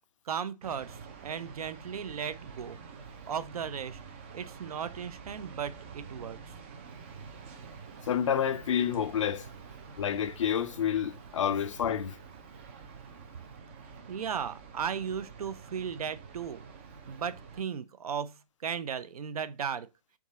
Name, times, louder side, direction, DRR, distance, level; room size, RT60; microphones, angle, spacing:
voice 1, 0.3-2.8 3.3-4.0 4.3-6.4 14.1-16.7 17.1-19.9, right 7 dB, 60° right, 0.6 m, -36 dB
sound 1, 0.6-17.6, right 5 dB, 20° right, 0.4 m, -48 dB
voice 2, 8.1-9.5 10.0-12.2, left 8 dB, 50° left, 0.5 m, -29 dB
3.6 x 3.6 x 4.1 m
hypercardioid pair, 155°, 21 cm